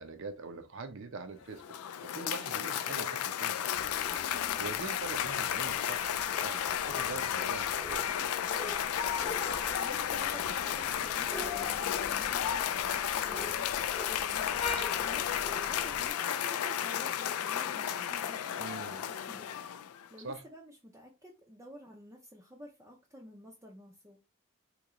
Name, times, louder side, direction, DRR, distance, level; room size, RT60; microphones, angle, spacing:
voice 1, 0.0-3.8 4.6-8.3 18.6-19.0 20.2-20.4, right 4 dB, 60° right, 0.6 m, -43 dB
Cheering / Applause, 1.4-20.1, left 9 dB, 80° left, 0.3 m, -33 dB
sound 1, 3.7-16.1, left 2 dB, 25° left, 0.8 m, -45 dB
voice 2, 4.2-4.6 9.2-18.8 19.1-24.2, equal, 15° right, 0.5 m, -51 dB
3.0 x 2.8 x 3.6 m
head